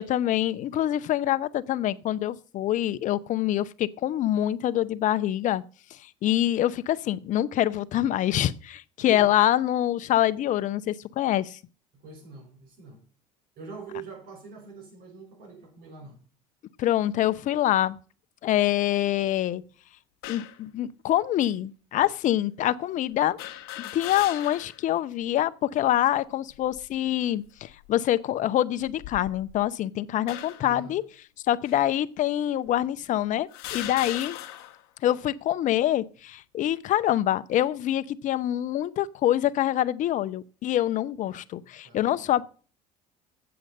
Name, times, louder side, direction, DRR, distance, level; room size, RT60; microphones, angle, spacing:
voice 1, 0.0-5.6 6.0-11.6 16.8-18.0 18.4-19.6 20.3-23.4 23.9-31.0 31.5-34.4 35.0-42.5, left 12 dB, 50° left, 0.6 m, -25 dB
voice 2, 11.9-13.0 13.6-16.2 30.6-31.0 41.3-41.4 41.8-42.3, right 5 dB, 65° right, 5.2 m, -44 dB
sound 1, 20.2-20.6 21.4-21.5 23.4-24.8 25.3-25.4 26.5-27.0 27.6-27.9 28.8-29.7 30.3-30.8 31.7-31.8 32.7-32.8 33.5-34.8, left 13 dB, 70° left, 1.1 m, -38 dB
7.9 x 7.8 x 5.2 m
supercardioid pair, 85°, 16 cm